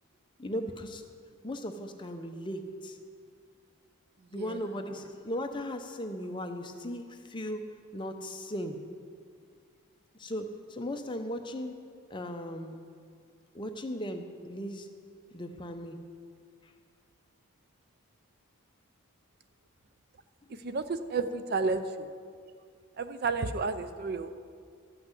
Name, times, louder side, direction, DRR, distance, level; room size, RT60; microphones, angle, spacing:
voice 1, 0.4-1.0 1.4-3.0 4.3-7.6 7.9-8.8 10.2-11.7 12.1-12.8 13.5-14.9 15.3-16.0, equal, 20° left, 6 dB, 0.6 m, -37 dB
voice 2, 20.5-22.1 23.0-24.4, right 4 dB, 45° right, 11 dB, 0.4 m, -32 dB
12.5 x 5.9 x 8.1 m, 2.2 s
head